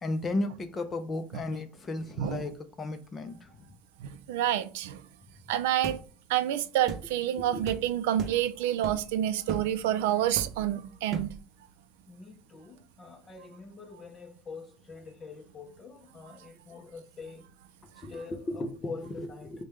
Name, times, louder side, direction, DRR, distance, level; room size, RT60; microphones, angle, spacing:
voice 1, 0.0-3.7 7.4-7.6 12.1-17.5 18.0-19.6, left 2 dB, 20° left, 0.5 m, -37 dB
voice 2, 4.0-5.0 5.5-6.0 6.3-11.3, right 12 dB, 90° right, 0.4 m, -28 dB
sound 1, 5.8-6.0 6.9-7.1 7.7-7.8 8.2-8.4 8.8-9.1 9.5-9.7 10.4-10.7 11.1-11.4, right 5 dB, 35° right, 0.7 m, -36 dB
5.0 x 2.2 x 3.1 m
cardioid pair, 155°, 0 cm